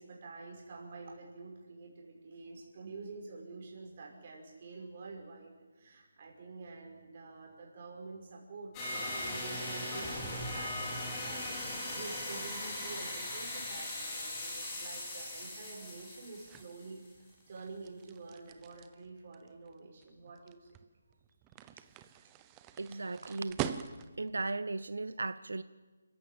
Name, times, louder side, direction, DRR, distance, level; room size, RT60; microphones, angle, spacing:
voice 1, 0.0-20.7, right 3 dB, 30° right, -1 dB, 5.7 m, -48 dB
sound 1, 8.7-17.1, left 1 dB, 15° left, 4.0 m, -39 dB
sound 2, 13.9-24.3, right 10 dB, 10° right, 0.7 m, -45 dB
voice 2, 22.8-23.6 24.2-25.6, right 3 dB, 85° right, 13 dB, 0.8 m, -36 dB
29.5 x 14.5 x 8.8 m, 1.3 s
hypercardioid pair, 175°, 0 cm